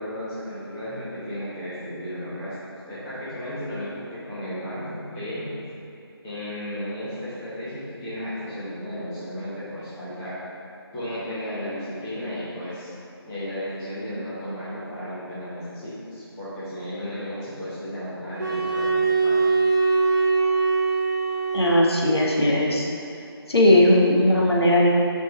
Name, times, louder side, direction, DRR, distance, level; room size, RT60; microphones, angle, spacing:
voice 1, 0.0-2.5 2.8-5.5 6.2-10.3 10.9-12.9 13.2-19.4, equal, 10° left, -14 dB, 1.1 m, -34 dB
sound 1, 18.4-22.3, right 4 dB, 45° right, 1.6 m, -22 dB
voice 2, 21.5-22.9 23.5-24.9, left 1 dB, 75° left, -3 dB, 1.4 m, -18 dB
9.0 x 5.4 x 3.0 m, 2.7 s
figure-of-eight pair, 170°, 13 cm